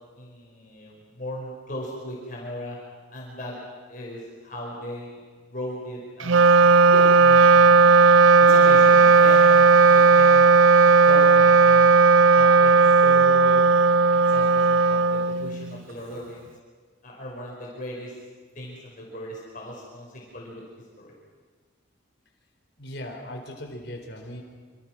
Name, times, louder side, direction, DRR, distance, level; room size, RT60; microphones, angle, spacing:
voice 1, 0.2-2.8 3.1-3.6 3.9-5.2 5.5-6.5 6.9-8.0 8.4-10.5 11.0-12.0 12.3-13.7 14.3-16.5 17.0-18.1 18.6-20.6 21.0-21.1, equal, 45° left, -3 dB, 5.2 m, -37 dB
Wind instrument woodwind instrument, 6.2-15.8, right 4 dB, 90° right, 0.7 m, -15 dB
voice 2, 22.8-24.4, left 1 dB, 60° left, 3 dB, 4.3 m, -38 dB
27.5 x 27.0 x 6.2 m, 1.5 s
head